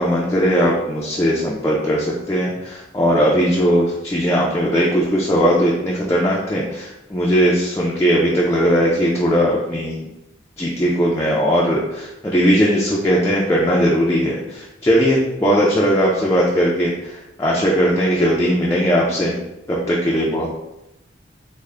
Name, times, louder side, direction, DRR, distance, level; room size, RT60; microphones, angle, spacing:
voice 1, 0.0-10.1 10.6-19.4 19.7-20.5, equal, 15° left, -5 dB, 0.4 m, -18 dB
3.6 x 2.1 x 3.3 m, 0.91 s
head